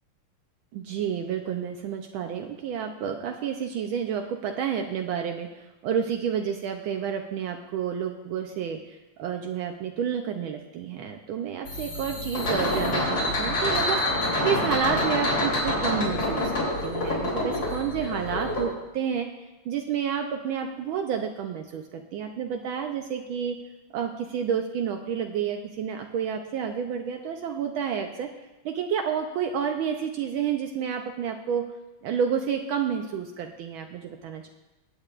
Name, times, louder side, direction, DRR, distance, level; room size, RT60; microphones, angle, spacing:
voice 1, 0.7-19.3 19.6-23.6 23.9-28.3 28.6-31.6 32.0-34.5, right 8 dB, 75° right, 4 dB, 1.4 m, -30 dB
sound 1, 11.7-18.6, left 1 dB, 75° left, 4.1 m, -27 dB
20.0 x 8.6 x 2.4 m, 1.1 s
omnidirectional pair, 2.3 m